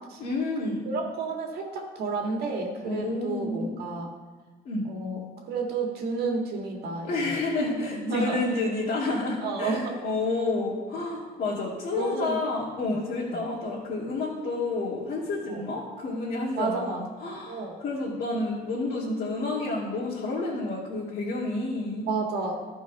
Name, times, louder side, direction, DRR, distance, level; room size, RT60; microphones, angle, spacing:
voice 1, 0.2-0.9 2.8-3.7 4.7-4.8 7.1-22.1, left 3 dB, 60° left, -7 dB, 2.1 m, -30 dB
voice 2, 0.8-4.1 4.8-5.2 5.5-7.4 7.9-8.4 9.4-9.9 12.0-12.4 12.8-13.0 13.2-13.4 15.5-15.6 16.6-17.0 17.5-17.8 22.1-22.6, right 3 dB, 70° right, 1 dB, 1.8 m, -31 dB
12.5 x 4.6 x 5.3 m, 1.3 s
cardioid pair, 110°, 17 cm